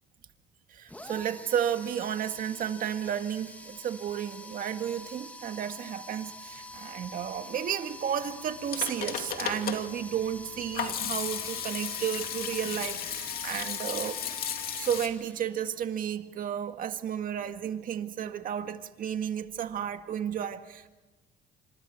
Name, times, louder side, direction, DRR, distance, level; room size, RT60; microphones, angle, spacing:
voice 1, 0.7-14.2 14.7-20.9, right 9 dB, 55° right, 1.8 m, -32 dB
sound 1, 0.9-15.8, left 1 dB, 10° left, 2.4 m, -46 dB
Hands / Sink (filling or washing), 8.4-15.1, left 8 dB, 60° left, 2.7 m, -35 dB
29.0 x 26.5 x 4.6 m
cardioid pair, 110°, 17 cm